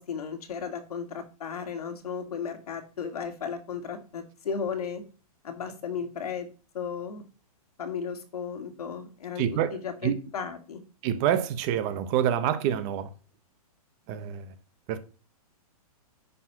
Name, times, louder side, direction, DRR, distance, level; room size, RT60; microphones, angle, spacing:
voice 1, 0.0-5.0 5.4-6.5 6.7-7.2 7.8-9.5 9.7-10.8, left 6 dB, 80° left, 2.2 m, -35 dB
voice 2, 9.4-10.1 11.0-13.1 14.1-14.5 14.9-15.0, right 10 dB, 25° right, 0.7 m, -27 dB
9.8 x 4.8 x 5.7 m
hypercardioid pair, 165°, 19 cm